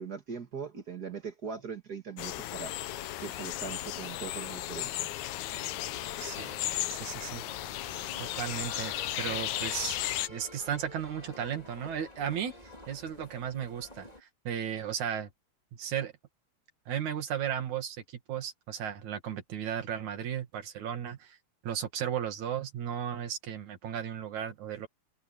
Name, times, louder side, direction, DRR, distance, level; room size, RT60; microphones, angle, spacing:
voice 1, 0.0-2.7 3.2-5.1, right 6 dB, 40° right, 1.7 m, -40 dB
sound 1, 2.2-10.3, left 14 dB, 80° left, 2.2 m, -35 dB
sound 2, 5.5-14.2, left 2 dB, 15° left, 2.8 m, -49 dB
voice 2, 6.2-7.4 8.2-10.0 10.3-15.3 15.7-16.1 16.9-21.4 21.6-24.9, right 9 dB, 75° right, 3.4 m, -35 dB
omnidirectional pair, 3.4 m